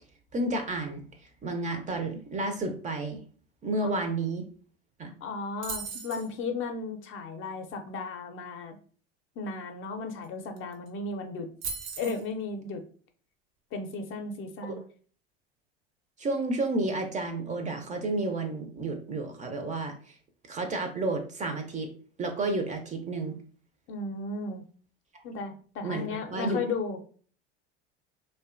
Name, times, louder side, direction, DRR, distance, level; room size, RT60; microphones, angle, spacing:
voice 1, 0.3-1.0 1.4-3.2 3.6-4.4 5.0-5.1 14.7-14.8 16.2-19.9 20.5-21.9 22.2-23.4 25.8-26.6, right 2 dB, 25° right, 5 dB, 0.4 m, -31 dB
voice 2, 5.2-8.8 9.4-11.5 12.0-12.8 13.7-14.8 23.9-24.6 25.2-27.0, left 4 dB, 40° left, 5 dB, 0.5 m, -35 dB
sound 1, 5.6-6.3 10.2-10.3 10.6-10.9 11.6-12.2, right 5 dB, 80° right, 0.6 m, -37 dB
2.5 x 2.2 x 2.4 m, 0.43 s
hypercardioid pair, 80°, 31 cm